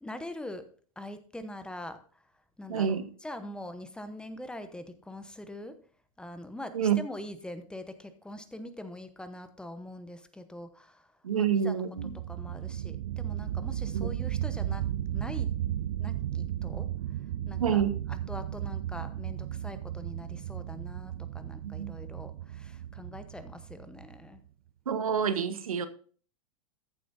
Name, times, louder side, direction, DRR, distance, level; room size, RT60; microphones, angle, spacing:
voice 1, 0.0-0.7 1.0-2.2 2.6-5.8 6.2-11.8 12.1-14.8 15.1-15.5 16.0-16.9 17.4-17.8 18.1-24.4, left 1 dB, 5° left, 0.9 m, -43 dB
voice 2, 2.7-3.0 6.7-7.0 11.2-12.1 13.9-14.1 17.6-17.9 21.6-21.9 24.9-25.9, right 8 dB, 90° right, 1.0 m, -27 dB
sound 1, 12.0-24.4, right 11 dB, 70° right, 0.5 m, -35 dB
14.0 x 7.6 x 2.7 m
hypercardioid pair, 115°, 17 cm